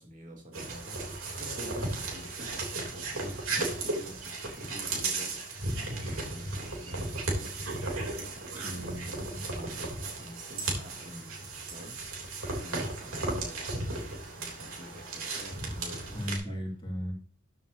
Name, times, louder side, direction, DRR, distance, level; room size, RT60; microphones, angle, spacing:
voice 1, 0.0-16.6, equal, 35° right, 1 dB, 2.5 m, -48 dB
sound 1, 0.5-16.4, right 2 dB, 70° right, 3.4 m, -35 dB
voice 2, 8.6-9.4 16.1-17.1, equal, 25° left, 0 dB, 2.5 m, -36 dB
13.5 x 7.0 x 2.9 m, 0.41 s
head